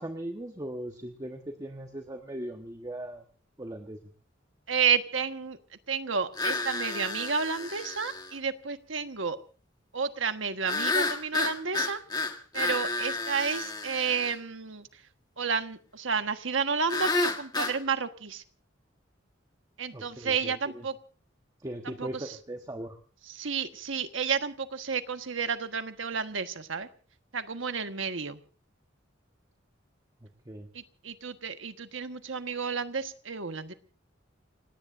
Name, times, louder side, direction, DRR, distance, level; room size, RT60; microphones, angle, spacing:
voice 1, 0.0-3.2 3.6-4.1 19.9-20.9 21.6-23.0 30.2-30.7, right 1 dB, 20° right, 5 dB, 1.3 m, -39 dB
voice 2, 4.7-5.6 5.9-9.4 9.9-12.0 12.5-14.9 15.4-18.4 19.8-20.9 22.0-22.1 23.4-26.9 27.3-28.4 31.0-33.7, right 6 dB, 80° right, 8 dB, 1.4 m, -31 dB
sound 1, 6.4-8.3 10.7-14.3 16.9-17.8, left 3 dB, 20° left, 1.5 m, -31 dB
29.5 x 18.0 x 2.6 m, 0.38 s
head